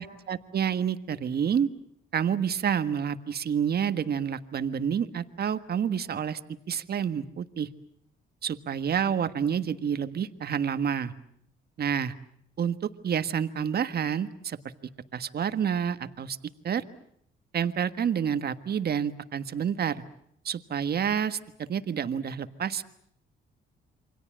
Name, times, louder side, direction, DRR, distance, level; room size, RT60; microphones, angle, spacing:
voice 1, 0.0-1.7 2.1-6.4 6.7-7.7 8.4-11.1 11.8-12.1 12.6-14.6 15.1-16.4 16.6-16.8 17.5-20.0 20.4-22.8, right 8 dB, 55° right, 10 dB, 1.6 m, -28 dB
28.5 x 24.5 x 7.6 m, 0.71 s
cardioid pair, 90°, 20 cm